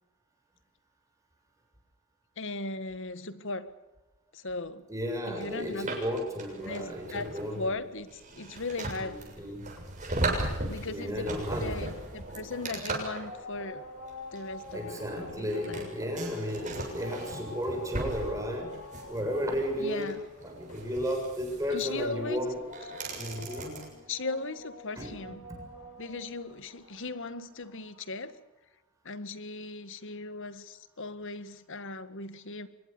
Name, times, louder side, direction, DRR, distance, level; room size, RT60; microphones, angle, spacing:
voice 1, 2.4-3.7 4.3-4.9 5.3-6.0 6.6-9.2 10.6-13.8 14.3-15.9 19.8-20.2 21.7-22.4 24.1-25.4 26.0-28.4 29.0-32.7, left 3 dB, 60° left, 13 dB, 1.7 m, -38 dB
voice 2, 4.9-7.8 9.0-9.7 10.9-11.8 14.7-18.8 19.1-20.2 20.4-22.6 23.2-23.8 25.0-25.1, equal, 15° right, 3 dB, 7.1 m, -33 dB
sound 1, 5.4-23.9, right 2 dB, 35° right, 7.0 m, -38 dB
sound 2, 11.9-28.2, left 2 dB, 80° left, 7.9 m, -47 dB
24.5 x 21.0 x 6.8 m, 1.0 s
head